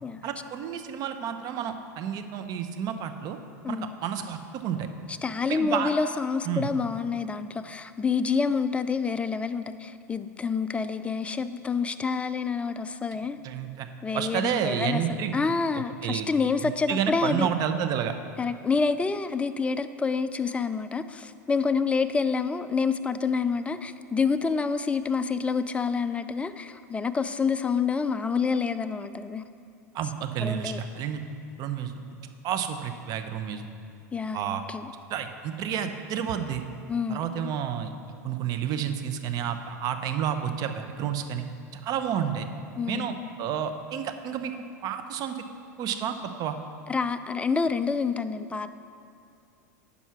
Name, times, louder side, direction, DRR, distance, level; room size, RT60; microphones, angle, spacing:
voice 1, 0.2-3.4 3.7-4.9 5.5-5.9 6.5-6.7 13.4-13.9 14.1-15.4 16.0-16.3 16.6-18.1 29.9-31.2 31.6-31.9 32.4-33.7 34.3-34.6 35.1-36.6 37.1-37.9 38.2-41.4 41.8-42.5 42.9-44.5 44.8-45.4 45.8-46.6, right 9 dB, 45° right, 8 dB, 0.7 m, -30 dB
voice 2, 5.1-13.4 14.0-17.5 18.4-29.4 30.4-30.8 34.1-34.9 36.9-37.5 42.8-43.3 46.9-48.7, left 5 dB, 15° left, 11 dB, 0.3 m, -28 dB
9.2 x 5.6 x 5.8 m, 2.5 s
hypercardioid pair, 105°, 9 cm